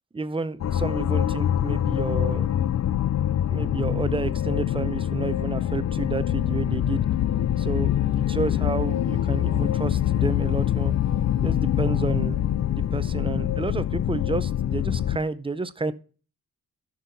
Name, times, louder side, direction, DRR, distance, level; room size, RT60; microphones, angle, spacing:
voice 1, 0.1-2.5 3.4-7.0 7.6-7.9 8.3-10.9 11.4-12.4 12.7-15.9, right 3 dB, 15° right, 0.5 m, -30 dB
sound 1, 0.6-15.2, left 11 dB, 55° left, 0.4 m, -24 dB
14.0 x 6.2 x 2.7 m
wide cardioid pair, 130°, 31 cm